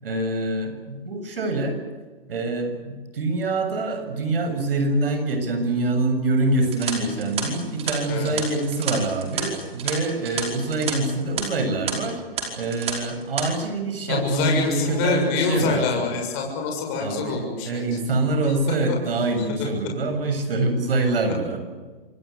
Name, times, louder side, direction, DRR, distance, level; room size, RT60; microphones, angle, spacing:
voice 1, 0.0-1.8 2.3-12.2 12.6-16.1 17.0-21.6, right 2 dB, 65° right, 7 dB, 7.3 m, -25 dB
sound 1, 6.6-10.9 11.2-11.4 11.9-12.0 12.4-12.9 13.2-13.4, right 8 dB, 20° right, 5.1 m, -30 dB
voice 2, 14.1-17.9 18.4-18.5 18.8-19.0 19.6-19.9 21.2-21.3, left 5 dB, 30° left, 1 dB, 6.8 m, -26 dB
27.0 x 19.5 x 8.5 m, 1.4 s
hypercardioid pair, 145°, 30 cm